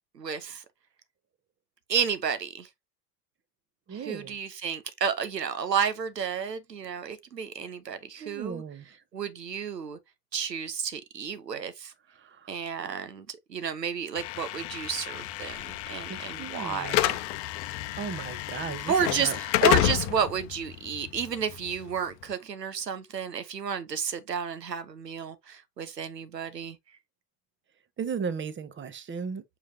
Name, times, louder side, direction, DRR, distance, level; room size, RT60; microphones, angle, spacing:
voice 1, 0.1-0.6 1.9-2.7 3.9-8.6 9.1-10.0 10.3-11.9 12.5-17.2 18.9-26.8, right 7 dB, 85° right, 1.0 m, -31 dB
voice 2, 3.9-4.3 8.2-8.8 12.2-12.5 16.1-17.2 18.0-19.4 28.0-29.6, right 6 dB, 25° right, 1.2 m, -36 dB
Slam / Alarm, 14.2-22.2, left 15 dB, 50° left, 0.8 m, -30 dB
7.2 x 4.8 x 2.8 m
figure-of-eight pair, 75°, 48 cm